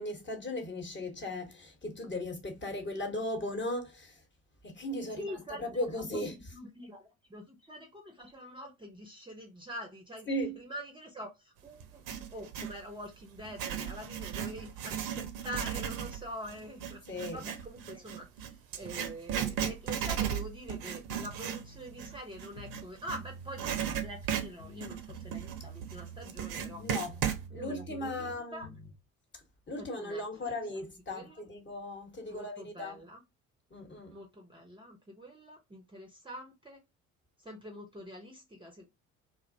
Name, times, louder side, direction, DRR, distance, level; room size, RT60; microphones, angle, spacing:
voice 1, 0.0-4.2 4.6-6.4 10.3-10.6 17.1-17.4 26.8-27.2 27.5-28.7 29.7-33.0 33.7-34.1, left 1 dB, 25° left, 1.0 m, -37 dB
voice 2, 5.2-10.3 10.6-12.0 12.3-17.0 17.3-26.8 27.5-28.7 29.8-30.5 31.1-31.4 32.3-33.2 34.1-36.8 37.4-38.9, equal, 10° right, 0.6 m, -45 dB
Writing, 11.8-12.8 13.4-23.2 23.6-27.4, right 9 dB, 60° right, 0.6 m, -36 dB
sound 1, 21.1-22.1 22.5-24.3 24.6-26.3 26.6-29.0, right 3 dB, 85° left, 0.6 m, -48 dB
2.5 x 2.0 x 2.6 m
figure-of-eight pair, 50°, 41 cm